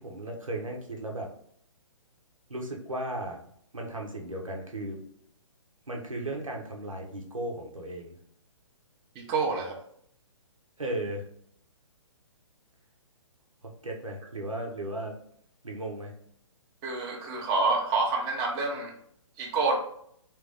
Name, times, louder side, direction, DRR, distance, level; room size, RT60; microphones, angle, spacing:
voice 1, 0.0-1.3 2.5-3.4 3.7-5.0 5.9-8.2 10.8-11.3 13.6-15.2 15.6-16.2, right 1 dB, 85° right, 0 dB, 1.2 m, -35 dB
voice 2, 9.2-9.7 16.8-18.9 19.4-19.8, right 3 dB, 25° right, -1 dB, 0.9 m, -27 dB
3.6 x 3.4 x 3.4 m, 0.66 s
figure-of-eight pair, 130°, 17 cm